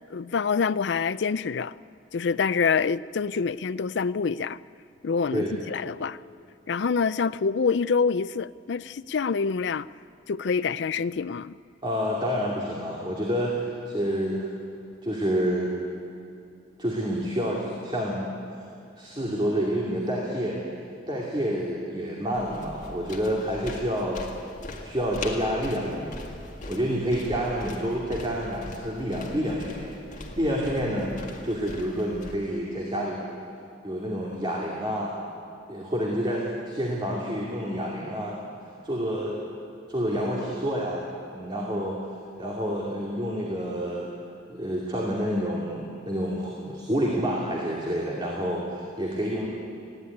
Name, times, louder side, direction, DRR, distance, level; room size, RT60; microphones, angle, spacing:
voice 1, 0.1-1.7 2.1-4.6 5.0-6.2 6.7-9.9 10.3-11.5, left 5 dB, 65° left, 0.4 m, -26 dB
voice 2, 11.8-14.5 15.0-15.7 16.8-18.3 19.0-20.6 21.1-24.3 24.8-26.2 26.7-29.9 30.4-31.1 31.4-33.2 33.8-35.1 35.7-38.4 38.8-39.4 39.9-41.0 41.3-42.0 42.4-44.1 44.5-49.5, equal, 25° right, 2.5 m, -28 dB
sound 1, 22.3-32.3, left 2 dB, 40° left, 2.0 m, -41 dB
21.0 x 16.0 x 9.6 m
head